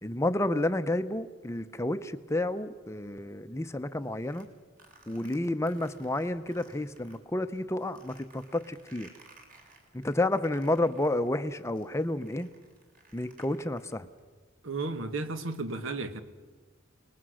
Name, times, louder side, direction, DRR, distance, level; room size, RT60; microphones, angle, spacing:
voice 1, 0.0-4.5 5.1-9.1 9.9-12.5 13.1-14.1, left 1 dB, 15° left, 0.6 m, -30 dB
sound 1, 4.0-7.2 7.5-14.2, right 3 dB, 45° right, 4.0 m, -58 dB
voice 2, 14.6-16.2, right 3 dB, 75° right, 1.4 m, -33 dB
29.5 x 20.0 x 6.4 m
head